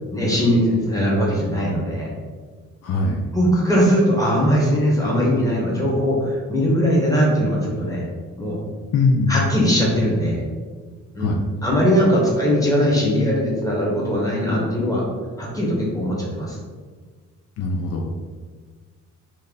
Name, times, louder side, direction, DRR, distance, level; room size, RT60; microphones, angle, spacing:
voice 1, 0.1-2.1 3.3-8.0 8.4-8.6 9.3-10.4 11.1-11.3 11.6-15.0 15.4-16.6, equal, 10° left, -4 dB, 1.3 m, -20 dB
voice 2, 2.8-3.3 8.9-9.4 11.2-11.4 17.6-18.1, left 3 dB, 55° left, 0 dB, 0.5 m, -21 dB
3.2 x 2.7 x 3.9 m, 1.5 s
cardioid pair, 90°, 30 cm